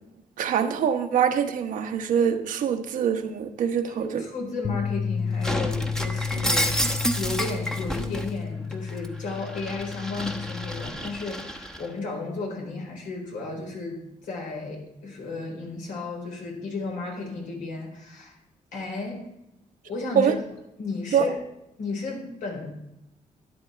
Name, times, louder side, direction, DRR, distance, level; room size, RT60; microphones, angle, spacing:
voice 1, 0.4-4.2 20.2-20.3 21.1-21.3, right 8 dB, 90° right, 6 dB, 1.1 m, -24 dB
voice 2, 3.8-6.9 7.2-18.4 18.7-19.3 19.8-20.4 20.8-21.4 21.8-22.7, left 3 dB, 85° left, 0 dB, 4.3 m, -33 dB
Bass guitar, 4.6-10.9, left 6 dB, 30° left, 0.6 m, -32 dB
Shatter, 5.4-8.3 8.7-11.9, equal, 5° left, 0.9 m, -30 dB
12.5 x 10.5 x 3.4 m, 0.87 s
cardioid pair, 130°, 13 cm